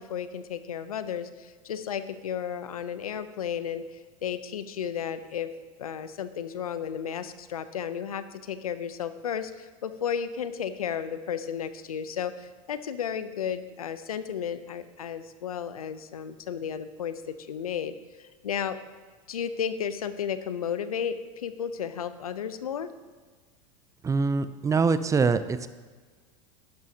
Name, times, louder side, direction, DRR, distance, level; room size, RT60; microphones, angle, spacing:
voice 1, 0.0-5.5 5.8-18.8 19.3-22.9, left 8 dB, 90° left, 12 dB, 0.6 m, -33 dB
voice 2, 24.0-25.7, right 4 dB, 15° right, 13 dB, 0.5 m, -24 dB
11.0 x 11.0 x 2.8 m, 1.4 s
hypercardioid pair, 95°, 18 cm